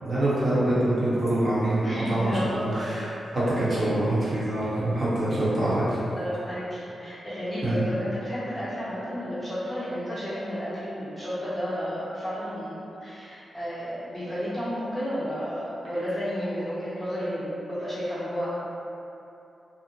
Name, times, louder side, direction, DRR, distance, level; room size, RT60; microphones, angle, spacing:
voice 1, 0.0-3.0 3.3-6.0 7.6-7.8, right 1 dB, 55° right, -10 dB, 1.0 m, -25 dB
voice 2, 1.8-2.8 6.2-18.5, equal, 15° right, -15 dB, 0.8 m, -32 dB
2.7 x 2.0 x 2.9 m, 2.8 s
cardioid pair, 90°, 0 cm